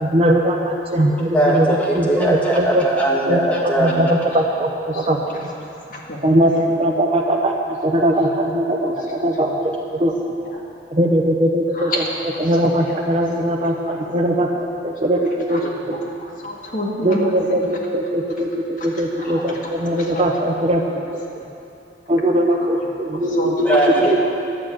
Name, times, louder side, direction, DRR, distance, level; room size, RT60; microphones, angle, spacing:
voice 1, 0.0-1.7 1.9-2.8 3.3-3.4 3.8-5.2 6.2-7.5 7.8-9.7 10.0-10.1 10.9-12.0 12.4-15.2 15.5-15.7 17.0-20.8 22.1-23.7 24.1-24.2, right 1 dB, 35° right, 1 dB, 0.7 m, -20 dB
voice 2, 1.3-4.1 23.6-24.2, right 1 dB, 10° left, -5 dB, 1.8 m, -19 dB
voice 3, 4.9-5.5 5.9-6.4 8.8-8.9 9.4-9.5 11.7-12.1 15.5-15.6 15.9-17.3 18.8-19.7 20.0-20.2 20.9-21.0 22.5-22.7 23.3-23.5, left 1 dB, 45° left, -2 dB, 1.8 m, -30 dB
11.0 x 7.2 x 8.8 m, 2.9 s
head